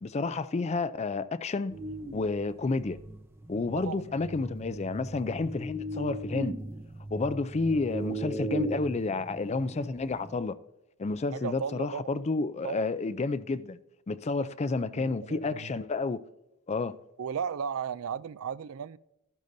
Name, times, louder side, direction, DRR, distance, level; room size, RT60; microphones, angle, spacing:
voice 1, 0.0-1.8 2.1-3.0 3.5-6.6 7.1-10.6 11.0-13.8 14.1-16.2 16.7-17.0, left 3 dB, 30° left, 0.4 m, -30 dB
sound 1, 1.7-10.4, right 1 dB, 10° right, 0.6 m, -38 dB
voice 2, 3.8-4.2 11.3-12.1 12.6-12.9 14.4-14.5 15.0-15.7 17.2-19.0, right 7 dB, 65° right, 0.4 m, -35 dB
14.0 x 11.5 x 2.7 m
head